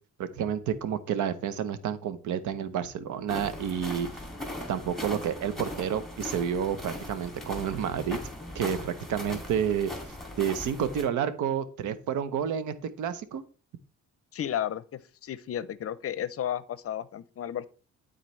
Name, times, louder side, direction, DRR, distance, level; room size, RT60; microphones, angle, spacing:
voice 1, 0.2-4.1 4.7-8.2 8.5-9.9 10.4-13.4, right 8 dB, 75° right, 0.9 m, -30 dB
sound 1, 3.3-11.0, left 1 dB, ahead, 2.4 m, -39 dB
voice 2, 14.3-17.7, left 10 dB, 50° left, 0.6 m, -33 dB
12.0 x 4.1 x 3.2 m
cardioid pair, 90°, 30 cm